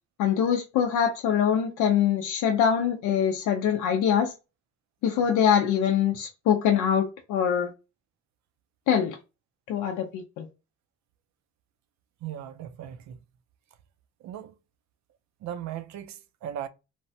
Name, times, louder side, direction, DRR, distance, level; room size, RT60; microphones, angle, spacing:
voice 1, 0.2-4.3 5.0-7.7 8.9-9.2 9.7-10.5, left 8 dB, 85° left, 0.5 m, -24 dB
voice 2, 12.2-13.2 14.2-14.5 15.4-16.7, right 10 dB, 65° right, 0.5 m, -37 dB
3.1 x 2.1 x 2.6 m
cardioid pair, 90°, 30 cm